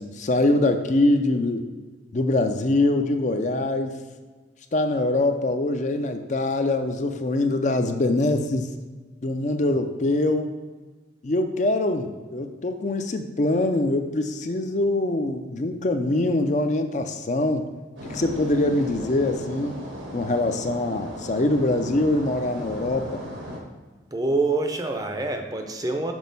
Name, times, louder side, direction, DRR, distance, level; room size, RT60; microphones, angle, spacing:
voice 1, 0.0-1.6 2.1-4.0 4.7-8.7 9.2-10.5 11.2-17.7 18.0-19.8 20.1-23.2, left 2 dB, 40° left, 7 dB, 0.5 m, -23 dB
sound 1, 18.0-23.6, equal, 90° right, 1.5 m, -36 dB
voice 2, 24.1-26.1, right 3 dB, 20° right, 4 dB, 0.5 m, -26 dB
6.2 x 4.2 x 5.3 m, 1.3 s
head